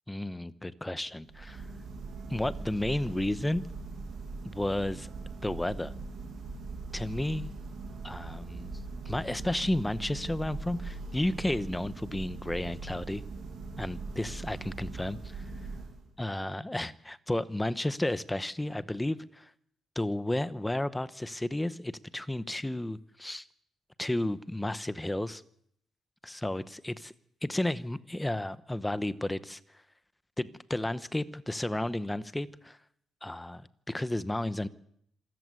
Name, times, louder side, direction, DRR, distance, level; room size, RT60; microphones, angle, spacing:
voice 1, 0.1-1.7 2.3-3.6 4.4-5.1 5.4-5.9 6.9-7.5 8.0-8.7 9.1-13.2 13.8-15.5 16.2-19.5 20.0-23.4 24.0-25.4 26.2-27.1 27.4-29.6 30.4-32.8 33.2-33.6 33.9-34.7, left 1 dB, 5° left, 0.9 m, -32 dB
Church bell, 1.2-16.2, right 3 dB, 55° right, 7.4 m, -41 dB
26.5 x 14.0 x 9.6 m
cardioid pair, 165°, 0 cm